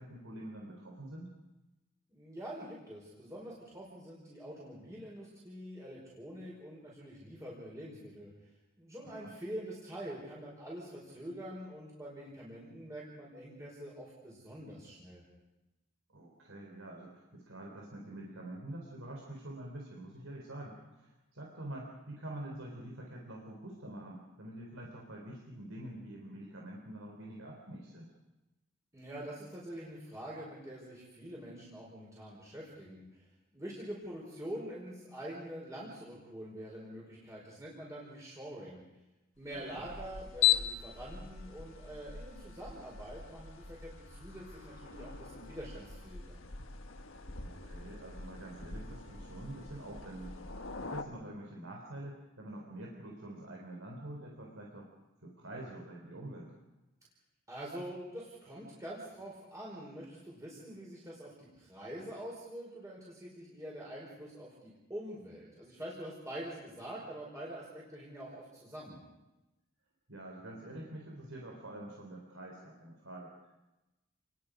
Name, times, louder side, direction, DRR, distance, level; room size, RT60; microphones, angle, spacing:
voice 1, 0.0-1.3 9.0-9.3 16.1-28.1 39.5-39.8 47.4-50.3 50.8-54.9 55.2-56.6 70.1-73.5, right 1 dB, 85° right, -1 dB, 3.9 m, -46 dB
voice 2, 2.1-8.3 8.8-15.3 28.9-33.2 33.5-38.8 39.4-46.4 57.5-69.0, right 1 dB, 15° right, -5 dB, 5.1 m, -45 dB
sound 1, 39.4-51.0, left 11 dB, 75° left, 1.5 m, -38 dB
29.0 x 21.5 x 5.2 m, 1.0 s
head